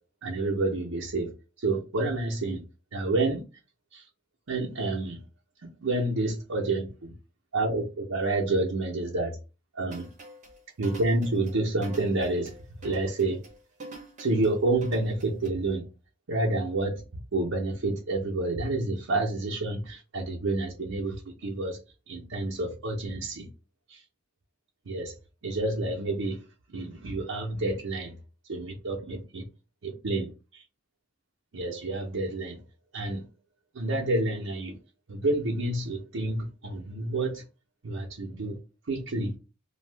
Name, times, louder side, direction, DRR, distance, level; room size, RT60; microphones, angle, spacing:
voice 1, 0.2-1.3 1.6-2.6 2.9-3.4 3.9-4.1 4.5-5.2 5.8-6.9 7.5-9.4 9.7-10.1 10.8-12.5 12.8-13.4 14.2-15.8 16.3-17.0 17.3-21.8 22.1-23.5 23.9-24.0 24.9-25.2 25.4-26.4 26.7-28.1 28.5-29.4 29.8-30.6 31.5-32.6 32.9-33.2 33.7-34.7 35.1-37.4 37.8-38.6 38.9-39.3, right 2 dB, 80° right, 0.7 m, -29 dB
sound 1, 9.9-15.5, right 2 dB, 35° right, 0.8 m, -45 dB
2.7 x 2.3 x 3.3 m
head